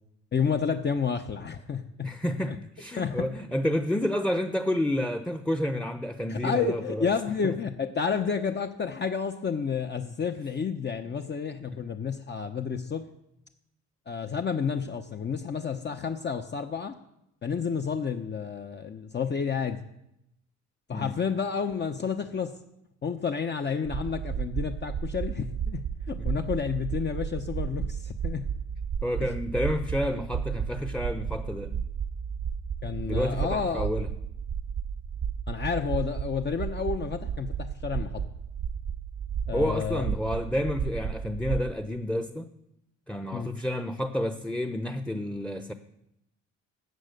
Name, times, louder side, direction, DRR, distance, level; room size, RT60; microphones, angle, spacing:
voice 1, 0.3-2.1 3.0-3.3 6.3-13.1 14.1-16.9 17.4-19.8 20.9-22.6 23.0-28.5 29.2-29.3 32.8-33.9 35.5-38.2 39.5-40.1 43.3-43.5, left 6 dB, 35° left, 6 dB, 1.0 m, -30 dB
voice 2, 2.0-7.1 7.4-7.5 20.9-21.1 26.2-26.3 29.0-31.7 33.0-34.1 39.5-42.5 43.1-45.7, left 1 dB, 5° left, 9 dB, 0.9 m, -29 dB
sound 1, 23.8-41.7, right 7 dB, 45° right, 0.7 m, -33 dB
16.0 x 7.5 x 6.6 m, 0.84 s
cardioid pair, 90°, 30 cm